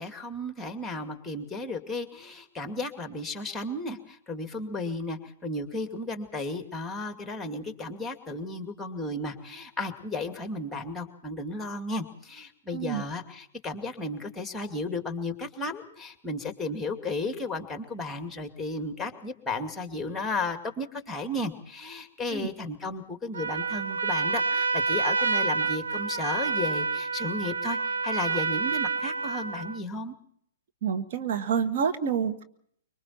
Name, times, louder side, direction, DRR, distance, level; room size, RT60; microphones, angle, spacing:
voice 1, 0.0-30.1, left 2 dB, 5° left, 7 dB, 2.3 m, -34 dB
voice 2, 12.7-13.0 22.3-22.5 30.8-32.4, right 7 dB, 50° right, 6 dB, 1.7 m, -28 dB
Trumpet, 23.3-29.8, right 4 dB, 70° right, 1.1 m, -28 dB
25.0 x 24.0 x 4.4 m, 0.66 s
figure-of-eight pair, 115°, 0 cm